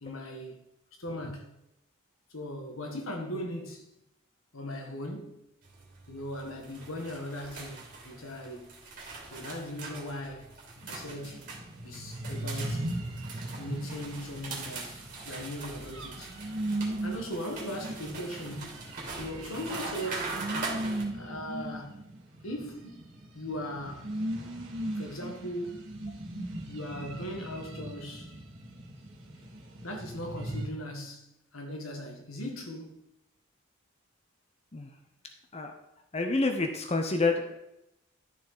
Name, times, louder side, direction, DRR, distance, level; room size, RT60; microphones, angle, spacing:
voice 1, 0.0-0.6 1.0-1.6 2.3-3.9 4.5-5.4 6.1-8.8 9.3-10.5 10.9-11.5 11.8-12.9 13.6-16.3 17.0-18.9 19.2-20.4 21.1-22.1 22.4-24.2 24.5-24.6 25.0-25.8 26.7-28.4 29.8-33.0, equal, 85° left, 1.8 m, -39 dB
sound 1, 5.6-21.0, right 3 dB, 45° right, 3.0 m, -42 dB
sound 2, 10.8-30.7, right 1 dB, 65° right, 2.3 m, -38 dB
voice 2, 36.1-37.6, left 3 dB, 30° left, 0.9 m, -28 dB
12.0 x 6.8 x 4.1 m
head